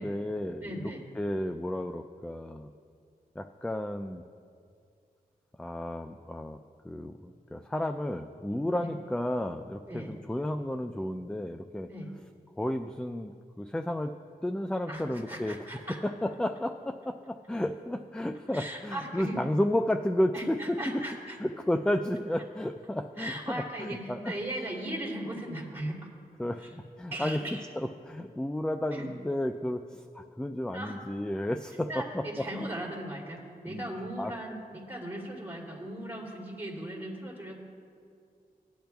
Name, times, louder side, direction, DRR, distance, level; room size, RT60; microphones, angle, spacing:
voice 1, 0.0-0.7 1.2-2.7 3.4-4.2 5.6-6.6 6.8-11.9 12.6-14.1 14.4-15.6 16.0-21.0 21.4-24.3 26.4-27.4 27.8-32.2 33.6-33.8 34.2-34.3, left 1 dB, 5° left, 7 dB, 0.3 m, -32 dB
voice 2, 0.6-1.0 8.7-8.9 9.9-10.1 11.9-12.1 14.9-16.0 18.5-19.4 20.3-21.4 23.2-26.1 26.6-26.7 27.1-27.6 28.9-29.1 30.7-31.0 31.9-37.5, right 1 dB, 15° right, -5 dB, 2.8 m, -38 dB
18.5 x 10.5 x 2.3 m, 2.3 s
wide cardioid pair, 90°, 16 cm